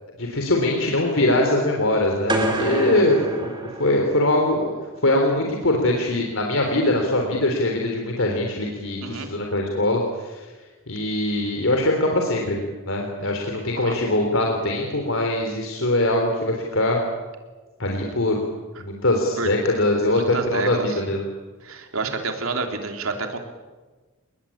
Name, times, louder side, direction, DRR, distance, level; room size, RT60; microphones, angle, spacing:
voice 1, 0.2-3.5 3.8-4.7 5.0-10.5 10.9-12.6 12.9-17.0 17.8-18.4 18.8-21.2, left 1 dB, 70° left, 1 dB, 3.8 m, -22 dB
sound 1, 2.3-4.4, right 1 dB, 20° right, 3.9 m, -27 dB
voice 2, 9.0-9.3 13.7-13.9 19.4-19.5 20.1-21.0 21.6-23.4, right 3 dB, 75° right, 4 dB, 3.4 m, -29 dB
29.0 x 20.5 x 8.8 m, 1.3 s
head